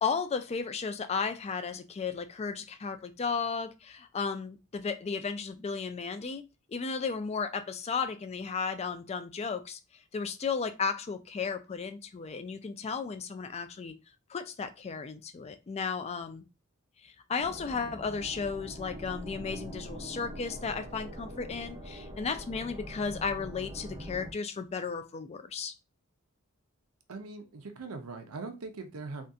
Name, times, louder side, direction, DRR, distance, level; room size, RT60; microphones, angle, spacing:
voice 1, 0.0-6.4 6.7-9.8 10.1-13.9 14.3-16.4 17.0-25.7, left 5 dB, 30° left, 10 dB, 0.3 m, -34 dB
sound 1, 17.4-24.3, equal, 25° right, 0.6 m, -43 dB
voice 2, 27.1-29.3, right 3 dB, 75° right, 7 dB, 0.6 m, -41 dB
3.5 x 2.3 x 2.6 m, 0.27 s
head